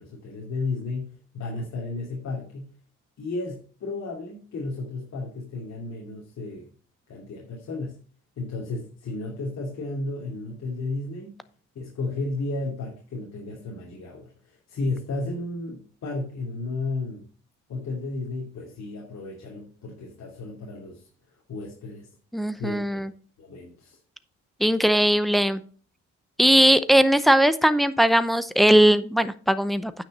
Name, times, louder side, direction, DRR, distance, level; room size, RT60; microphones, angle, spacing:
voice 1, 0.0-2.7 3.2-6.7 7.1-8.0 8.4-11.4 11.7-17.2 17.7-21.0 21.5-22.1 22.6-23.1 23.4-24.0, left 2 dB, 60° left, -3 dB, 2.7 m, -33 dB
voice 2, 22.3-23.1 24.6-25.6 26.4-29.9, equal, ahead, 13 dB, 0.7 m, -19 dB
9.2 x 5.9 x 5.5 m, 0.41 s
cardioid pair, 90°, 30 cm